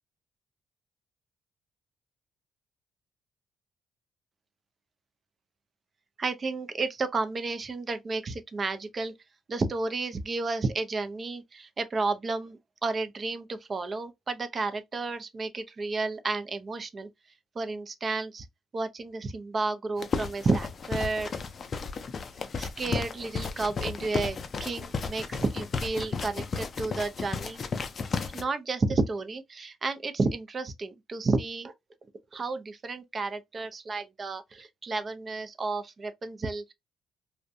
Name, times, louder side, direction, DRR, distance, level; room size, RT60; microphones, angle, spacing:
voice 1, 6.2-9.1 9.5-17.1 17.6-18.5 18.7-21.3 22.6-27.6 28.3-31.7 32.3-36.7, right 3 dB, 40° right, 0.4 m, -31 dB
sound 1, 20.0-28.4, left 5 dB, 45° left, 0.4 m, -34 dB
2.5 x 2.1 x 2.5 m
cardioid pair, 90°, 0 cm